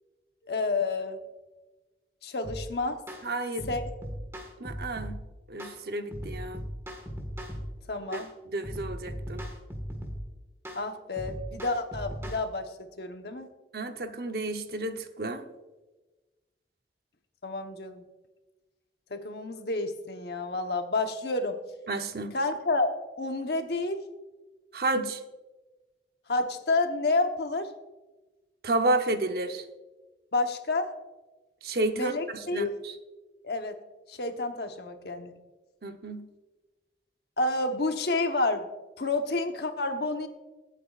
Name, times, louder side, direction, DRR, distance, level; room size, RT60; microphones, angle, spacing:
voice 1, 0.5-1.2 2.2-3.0 3.7-3.8 7.9-8.3 10.7-13.5 17.4-18.1 19.1-21.6 22.3-24.0 26.3-27.7 30.3-30.9 31.9-32.8 33.4-33.8 34.1-35.4 37.4-38.7 39.0-40.3, left 2 dB, 70° left, 6 dB, 1.1 m, -29 dB
sound 1, 2.4-2.7 3.1-3.3 3.6-5.2 5.6-5.8 6.1-7.7 8.1-8.3 8.6-10.2 10.7-10.8 11.2-12.4, equal, 15° right, 1.6 m, -38 dB
voice 2, 3.2-3.7 4.6-5.2 5.5-6.6 8.1-8.2 8.5-9.4 13.7-15.4 21.9-22.3 24.7-25.2 28.6-29.6 31.6-32.9 35.8-36.2, right 2 dB, 60° right, 7 dB, 0.9 m, -31 dB
23.5 x 8.5 x 2.5 m, 1.2 s
head